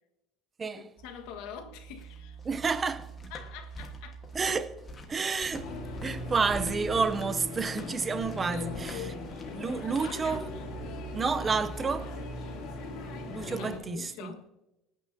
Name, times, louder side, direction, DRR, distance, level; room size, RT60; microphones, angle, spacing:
voice 1, 0.7-2.4 3.3-4.2 8.3-9.3 9.6-10.5 13.4-14.5, left 7 dB, 70° left, 1.4 m, -44 dB
sound 1, 1.0-13.7, right 6 dB, 60° right, 3.8 m, -46 dB
sound 2, 1.8-10.6, left 2 dB, 20° left, 1.3 m, -48 dB
voice 2, 2.4-3.1 4.3-4.7 5.1-5.7 6.0-9.1 9.5-10.5 11.1-12.2 13.2-14.4, right 5 dB, 15° right, 0.6 m, -30 dB
sound 3, 5.5-13.8, left 3 dB, 50° left, 2.8 m, -39 dB
26.0 x 9.0 x 2.7 m
cardioid pair, 180°, 0 cm